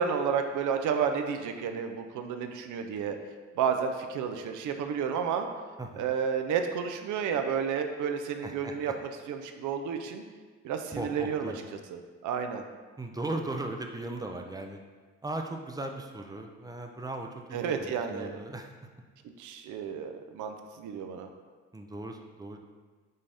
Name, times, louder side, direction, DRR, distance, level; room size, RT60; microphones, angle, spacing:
voice 1, 0.0-3.2 3.5-5.5 6.0-8.9 9.3-10.2 10.6-11.5 11.9-12.6 17.5-18.4 19.4-21.3, right 7 dB, 80° right, 6 dB, 0.5 m, -31 dB
voice 2, 8.4-8.9 10.9-11.6 13.0-14.8 15.2-18.7 21.7-22.6, right 2 dB, 15° right, 3 dB, 0.4 m, -37 dB
5.4 x 2.6 x 3.4 m, 1.4 s
cardioid pair, 90°, 30 cm